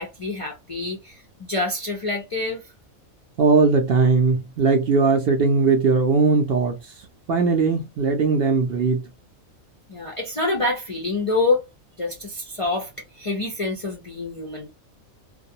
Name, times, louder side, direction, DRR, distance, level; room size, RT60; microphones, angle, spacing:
voice 1, 0.0-2.6 9.9-11.6 12.0-12.9 13.2-14.7, left 2 dB, 50° left, 0.4 m, -26 dB
voice 2, 3.4-9.1, right 4 dB, 65° right, 0.6 m, -19 dB
2.3 x 2.2 x 2.7 m
omnidirectional pair, 1.4 m